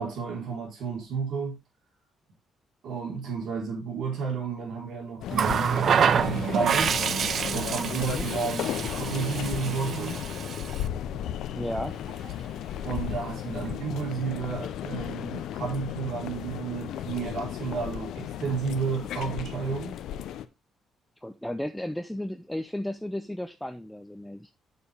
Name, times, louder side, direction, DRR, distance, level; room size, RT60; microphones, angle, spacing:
voice 1, 0.0-1.6 2.8-6.9 7.5-10.2 12.8-19.9, right 5 dB, 75° right, 4.1 m, -32 dB
sound 1, 5.2-20.4, left 10 dB, 80° left, 0.6 m, -35 dB
Water tap faucet, 5.3-10.9 12.1-12.3, right 7 dB, 55° right, 0.5 m, -27 dB
voice 2, 11.5-11.9 21.2-24.5, left 1 dB, 5° left, 0.6 m, -34 dB
7.1 x 7.0 x 3.5 m
cardioid pair, 90°, 0 cm